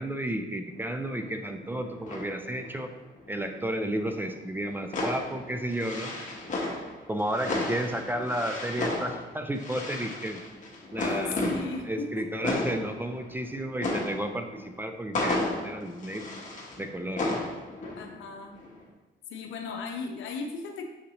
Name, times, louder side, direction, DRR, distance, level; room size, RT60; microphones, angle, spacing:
voice 1, 0.0-2.9 3.3-6.1 7.1-10.4 10.9-11.5 11.8-16.2 16.8-17.4, right 1 dB, 10° right, 5 dB, 0.3 m, -32 dB
sound 1, 0.7-0.8 1.0-3.7 4.0-18.3 18.6-18.8, left 2 dB, 40° left, 1.0 m, -34 dB
voice 2, 11.0-12.3 17.9-18.5 19.3-20.8, left 4 dB, 80° left, 3 dB, 0.7 m, -36 dB
6.4 x 2.6 x 2.8 m, 1.1 s
cardioid pair, 90°, 20 cm